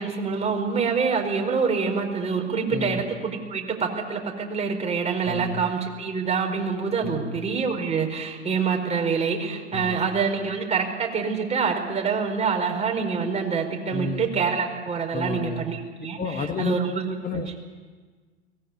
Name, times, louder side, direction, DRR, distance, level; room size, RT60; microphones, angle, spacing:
voice 1, 0.0-16.2 16.6-17.6, right 5 dB, 20° right, 2 dB, 4.8 m, -26 dB
voice 2, 2.7-3.0 5.2-5.6 7.0-7.4 9.7-10.1 13.9-14.3 15.1-15.6 16.2-16.7 17.2-17.6, left 5 dB, 25° left, 4 dB, 1.9 m, -31 dB
22.5 x 19.0 x 9.8 m, 1.5 s
hypercardioid pair, 100°, 35 cm